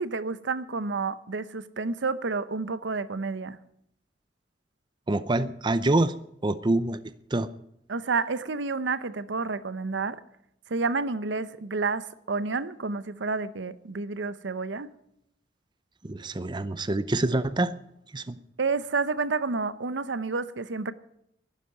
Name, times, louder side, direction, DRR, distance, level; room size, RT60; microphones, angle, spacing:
voice 1, 0.0-3.6 7.9-10.2 10.7-14.9 18.6-20.9, right 4 dB, 80° right, 0.7 m, -30 dB
voice 2, 5.1-6.1 6.4-7.0 7.3-7.5 16.0-17.7 18.1-18.4, right 2 dB, 25° right, 0.6 m, -26 dB
11.5 x 10.5 x 9.5 m
head